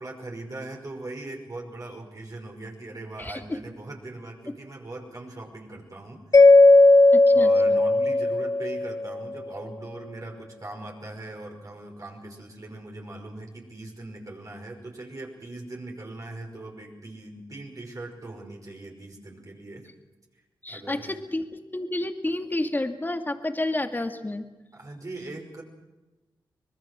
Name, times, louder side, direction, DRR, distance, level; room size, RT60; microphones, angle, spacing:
voice 1, 0.0-6.2 7.3-19.9 20.7-21.2 24.7-25.6, right 2 dB, 45° right, 0 dB, 5.5 m, -40 dB
voice 2, 3.2-3.6 7.1-7.8 20.6-24.4, left 1 dB, 25° left, 6 dB, 2.3 m, -30 dB
Mallet percussion, 6.3-9.3, left 2 dB, 45° left, 1.0 m, -16 dB
25.0 x 20.0 x 6.3 m, 1.1 s
cardioid pair, 60°, 8 cm